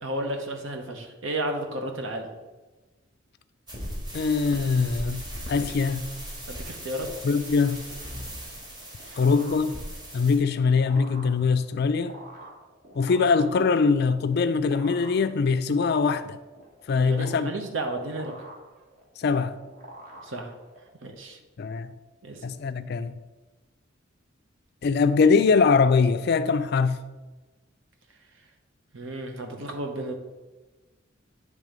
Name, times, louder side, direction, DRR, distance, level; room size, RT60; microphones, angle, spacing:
voice 1, 0.0-2.3 5.5-5.7 6.5-7.1 9.0-9.2 16.9-18.3 20.2-20.5 21.0-21.4 22.2-22.4 28.9-30.1, right 1 dB, 75° right, 1.0 m, -33 dB
sound 1, 3.7-10.4, equal, 20° right, 1.6 m, -38 dB
voice 2, 4.1-5.2 5.5-6.0 7.2-7.8 9.2-9.7 10.1-12.2 13.0-16.4 16.9-17.5 19.2-19.6 21.6-21.9 22.4-23.2 24.8-27.0, left 5 dB, 55° left, 0.4 m, -22 dB
sound 2, 8.5-20.9, right 1 dB, 45° right, 1.4 m, -47 dB
8.9 x 3.4 x 5.1 m
head